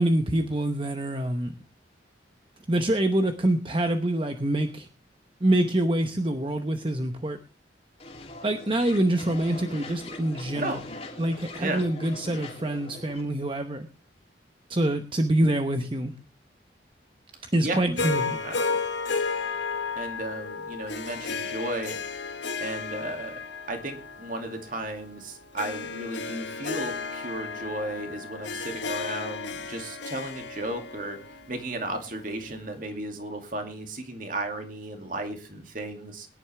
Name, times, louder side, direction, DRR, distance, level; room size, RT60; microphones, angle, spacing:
voice 1, 0.0-1.5 2.7-4.9 5.4-7.4 8.4-10.8 11.2-13.9 14.7-16.1 17.5-18.4, right 1 dB, 25° right, 7 dB, 0.9 m, -25 dB
sound 1, 8.0-13.2, left 2 dB, 35° left, 2.9 m, -41 dB
voice 2, 17.6-18.8 20.0-22.0 22.6-23.3 23.7-31.2 31.5-36.3, right 1 dB, 45° right, 5 dB, 2.5 m, -34 dB
Harp, 18.0-32.3, left 4 dB, 75° left, 1.5 m, -33 dB
21.5 x 10.5 x 3.4 m, 0.32 s
head